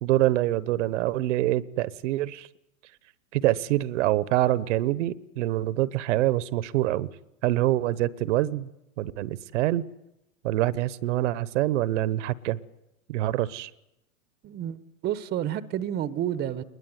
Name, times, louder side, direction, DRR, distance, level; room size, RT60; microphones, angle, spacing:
voice 1, 0.0-2.5 3.3-7.1 7.4-8.7 9.0-9.8 10.4-12.6 13.1-13.7, right 15 dB, 55° right, 1.0 m, -25 dB
voice 2, 14.4-16.6, right 11 dB, 20° right, 0.9 m, -30 dB
22.0 x 21.0 x 9.5 m
hypercardioid pair, 125°, 44 cm